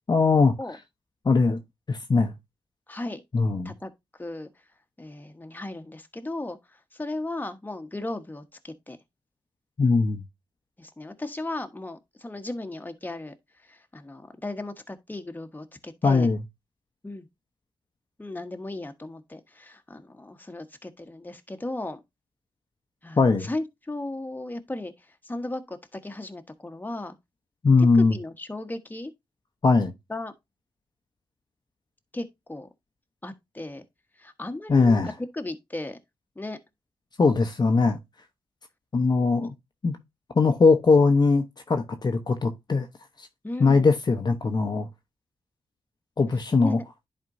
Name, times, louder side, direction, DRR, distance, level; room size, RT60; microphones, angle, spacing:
voice 1, 0.1-0.5 1.2-1.6 1.9-2.3 3.3-3.7 9.8-10.2 16.0-16.4 23.2-23.5 27.6-28.1 29.6-29.9 34.7-35.1 37.2-38.0 38.9-39.5 39.8-40.0 40.3-42.9 43.2-43.3 43.6-44.9 46.2-46.8, left 4 dB, 45° left, 0.8 m, -20 dB
voice 2, 2.9-3.2 3.6-3.9 4.2-4.5 5.0-6.6 6.9-9.0 10.8-13.3 13.7-16.3 17.0-17.3 18.2-22.0 23.0-24.9 25.2-27.1 28.0-29.1 30.1-30.3 32.1-32.7 33.2-33.8 34.2-35.0 35.3-36.0 36.4-36.6 43.4-43.9 46.6-46.8, left 2 dB, 20° left, 1.2 m, -36 dB
10.5 x 4.4 x 2.6 m
cardioid pair, 60°, 10 cm